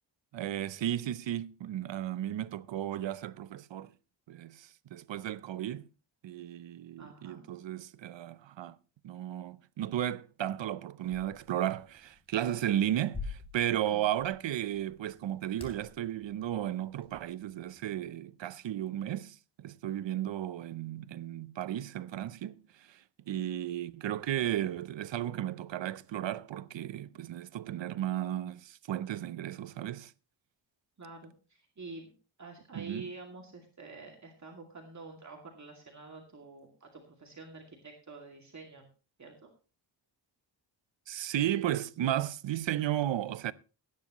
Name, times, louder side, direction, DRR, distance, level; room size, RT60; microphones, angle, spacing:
voice 1, 0.3-3.9 4.3-5.9 6.2-8.8 9.0-30.1 32.7-33.1 41.1-43.5, right 12 dB, 80° right, 0.7 m, -34 dB
voice 2, 7.0-7.4 13.9-14.1 31.0-32.1 32.4-38.9 39.2-39.5, right 3 dB, 40° right, 2.4 m, -48 dB
sound 1, 11.0-18.1, left 4 dB, 15° left, 3.4 m, -49 dB
18.0 x 9.9 x 3.0 m
wide cardioid pair, 125°, 44 cm